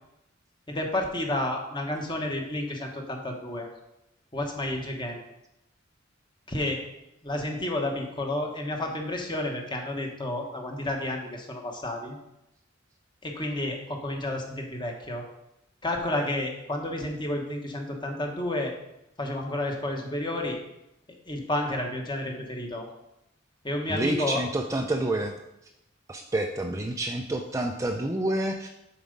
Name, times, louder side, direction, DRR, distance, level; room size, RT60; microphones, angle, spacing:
voice 1, 0.7-3.7 4.3-5.2 6.5-6.8 7.2-12.2 13.2-15.2 15.8-18.8 19.2-20.6 21.3-22.9 23.6-24.4, left 1 dB, 25° left, 2 dB, 1.2 m, -31 dB
voice 2, 23.9-25.3 26.1-28.7, right 1 dB, 15° right, 3 dB, 0.4 m, -28 dB
7.1 x 4.8 x 5.3 m, 0.87 s
head